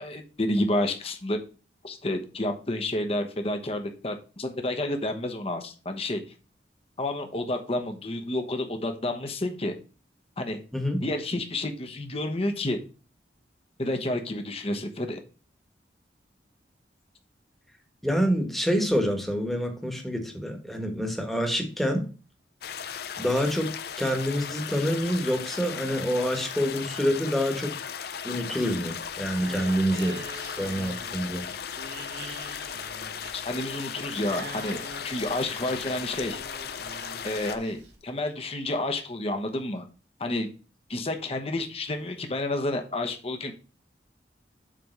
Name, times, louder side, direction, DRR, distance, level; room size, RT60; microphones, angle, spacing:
voice 1, 0.0-1.4 1.8-6.2 7.0-9.7 10.4-10.6 11.0-12.8 13.8-15.2 33.3-34.8 35.0-36.4 37.2-39.8 40.2-40.5 40.9-43.5, left 1 dB, 35° left, 5 dB, 1.1 m, -30 dB
voice 2, 18.0-22.0 23.2-27.7 28.2-30.2 30.6-31.4, equal, ahead, 3 dB, 1.4 m, -27 dB
sound 1, 22.6-37.6, left 8 dB, 60° left, 0.6 m, -37 dB
sound 2, 28.9-38.0, right 1 dB, 75° right, 1.8 m, -44 dB
7.6 x 3.5 x 6.5 m, 0.35 s
head